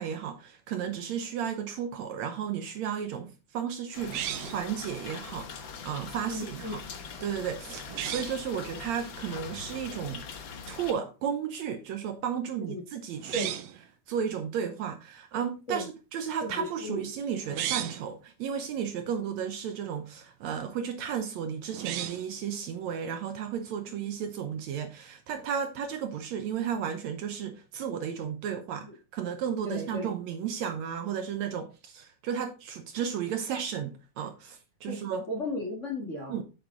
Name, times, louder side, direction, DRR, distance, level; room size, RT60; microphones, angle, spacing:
voice 1, 0.0-6.8 7.2-10.2 10.7-13.5 14.1-35.3 36.3-36.4, right 8 dB, 70° right, 2.0 m, -34 dB
sound 1, 3.9-10.9, left 6 dB, 60° left, 1.3 m, -42 dB
sound 2, 4.1-4.7 7.8-8.4 13.2-13.8 17.4-18.1 21.7-22.3, right 11 dB, 90° right, 1.4 m, -34 dB
voice 2, 6.3-6.7 12.6-12.8 13.3-13.5 15.7-15.9 16.4-17.0 23.9-24.0 28.8-28.9 29.6-30.1 34.9-35.0 35.3-36.4, left 1 dB, 30° left, 1.7 m, -35 dB
8.1 x 7.7 x 3.8 m
omnidirectional pair, 3.7 m